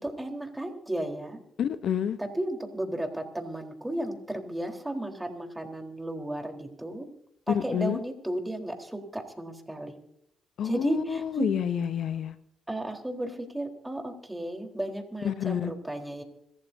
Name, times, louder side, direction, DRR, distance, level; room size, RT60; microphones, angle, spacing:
voice 1, 0.0-1.4 2.2-7.1 7.5-10.0 10.6-11.5 12.7-16.2, right 1 dB, 10° right, 3 dB, 4.1 m, -34 dB
voice 2, 1.6-2.2 7.5-8.0 10.6-12.3 15.2-15.7, left 8 dB, 65° left, 13 dB, 0.9 m, -28 dB
26.0 x 14.5 x 2.8 m, 0.77 s
hypercardioid pair, 50°, 0 cm